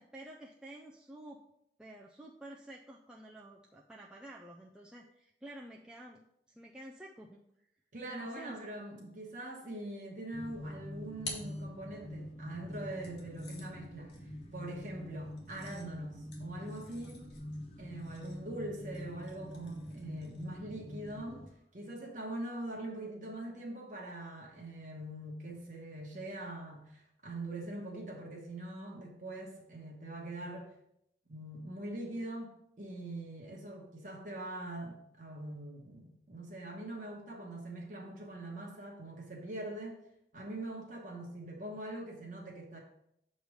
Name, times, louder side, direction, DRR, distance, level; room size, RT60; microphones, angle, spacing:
voice 1, 0.0-1.4 1.8-6.2 6.5-7.4 8.1-8.7, right 1 dB, 5° right, -3 dB, 0.3 m, -50 dB
voice 2, 7.9-14.1 14.5-17.3 17.8-30.7 31.3-40.0 40.3-42.8, right 1 dB, 45° right, -1 dB, 1.1 m, -43 dB
sound 1, 10.3-21.5, left 1 dB, 35° left, 0.7 m, -45 dB
sound 2, 10.6-12.3 13.0-20.6, left 3 dB, 90° left, 1.4 m, -51 dB
6.6 x 3.2 x 4.9 m, 0.77 s
head